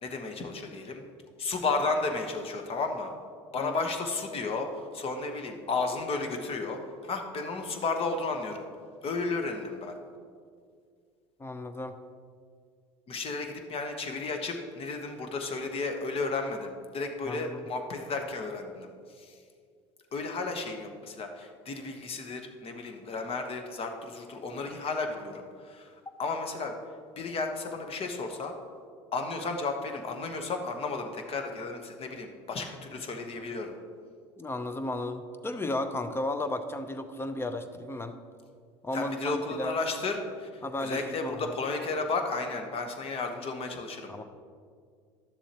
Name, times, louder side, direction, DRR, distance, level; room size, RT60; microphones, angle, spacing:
voice 1, 0.0-1.0 1.4-3.1 3.5-8.6 9.0-10.0 13.1-19.4 20.1-26.7 27.2-28.5 29.1-33.7 38.9-44.1, left 3 dB, 40° left, 5 dB, 1.1 m, -33 dB
voice 2, 11.4-12.0 17.3-17.6 34.4-38.2 38.8-39.8 40.6-41.5 44.1-44.2, left 1 dB, 15° left, 9 dB, 0.7 m, -34 dB
11.5 x 6.9 x 3.0 m, 2.1 s
hypercardioid pair, 80°, 15 cm